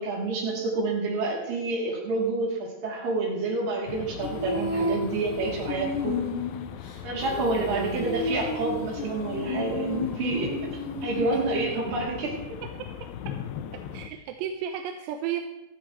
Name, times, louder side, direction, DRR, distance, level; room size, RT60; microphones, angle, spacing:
voice 1, 0.0-6.2 7.0-12.6, right 3 dB, 55° right, -2 dB, 4.3 m, -28 dB
sound 1, 3.9-14.1, left 9 dB, 90° left, 2.1 m, -39 dB
Female singing, 4.2-11.9, left 2 dB, 60° left, 4.4 m, -32 dB
voice 2, 7.5-8.1 11.3-11.4 13.9-15.4, right 9 dB, 85° right, 5 dB, 2.8 m, -33 dB
16.0 x 13.5 x 3.1 m, 1.0 s
omnidirectional pair, 5.0 m